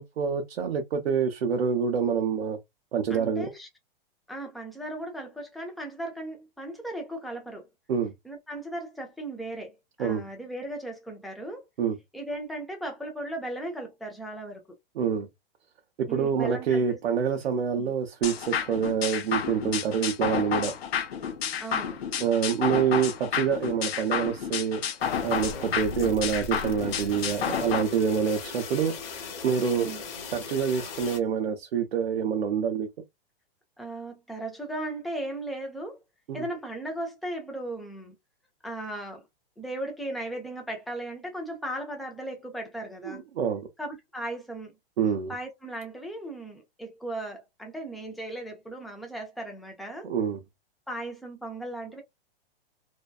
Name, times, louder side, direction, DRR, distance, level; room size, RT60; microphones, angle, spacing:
voice 1, 0.0-2.6 2.9-3.5 7.9-8.1 10.0-10.2 11.8-12.0 15.0-15.3 16.1-20.7 22.2-24.8 25.2-29.9 30.3-32.9 36.3-36.5 43.0-43.7 45.0-45.3 50.0-50.4, right 7 dB, 85° right, 0.7 m, -27 dB
voice 2, 3.1-3.7 4.3-7.7 8.2-11.7 12.1-14.6 16.1-17.0 21.6-22.0 29.8-30.0 33.8-36.0 36.3-38.2 38.6-39.2 39.6-43.2 43.8-44.7 45.3-50.1 50.9-52.0, right 1 dB, ahead, 0.4 m, -37 dB
sound 1, 18.2-27.8, left 7 dB, 80° left, 0.7 m, -31 dB
sound 2, 25.0-31.2, left 4 dB, 40° left, 1.0 m, -38 dB
2.6 x 2.2 x 2.2 m
hypercardioid pair, 135°, 30 cm